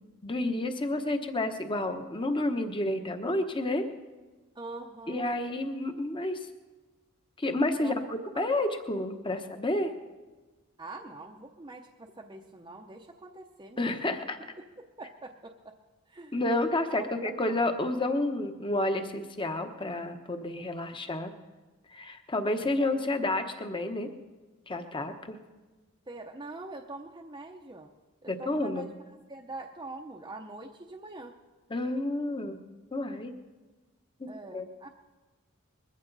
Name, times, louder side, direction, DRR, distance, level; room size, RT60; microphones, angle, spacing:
voice 1, 0.2-3.9 5.1-6.4 7.4-7.9 8.4-9.9 13.8-14.4 16.3-21.3 21.9-24.1 24.7-25.4 28.3-28.9 31.7-32.6 32.9-33.3 34.2-34.6, left 2 dB, 25° left, 7 dB, 1.0 m, -30 dB
voice 2, 4.5-5.3 7.8-8.0 8.3-8.6 10.8-14.2 14.8-15.7 16.1-16.4 16.9-17.5 22.8-22.9 26.1-27.9 28.2-28.9 29.3-31.3 34.3-34.9, right 2 dB, 20° right, 1 dB, 0.7 m, -44 dB
21.0 x 15.0 x 4.0 m, 1.2 s
head